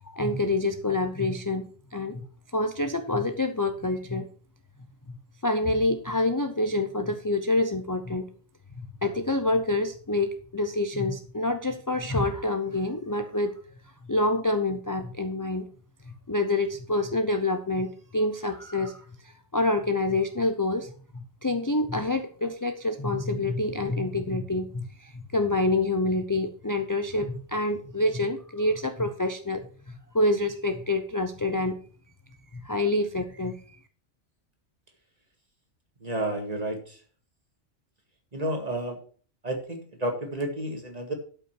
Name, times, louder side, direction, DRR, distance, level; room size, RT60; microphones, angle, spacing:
voice 1, 0.0-2.3 2.5-4.3 5.1-5.2 5.4-8.3 8.8-13.6 14.1-15.7 16.1-31.8 32.5-33.8, left 2 dB, 20° left, 6 dB, 0.7 m, -27 dB
voice 2, 36.0-37.0 38.3-39.0 39.4-41.1, right 1 dB, 35° right, 3 dB, 2.2 m, -31 dB
12.0 x 5.7 x 5.8 m, 0.42 s
omnidirectional pair, 1.2 m